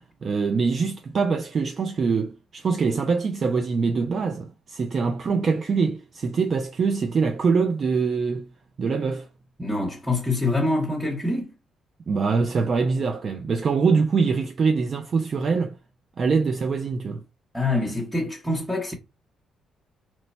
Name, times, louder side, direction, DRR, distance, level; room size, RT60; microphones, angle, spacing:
voice 1, 0.0-8.5 8.8-9.3 12.1-15.8 16.2-17.2, right 5 dB, 50° right, 0.4 m, -24 dB
voice 2, 9.6-11.5 17.5-18.9, left 2 dB, 5° right, 0.8 m, -25 dB
3.0 x 2.1 x 4.2 m
cardioid pair, 90°, 0 cm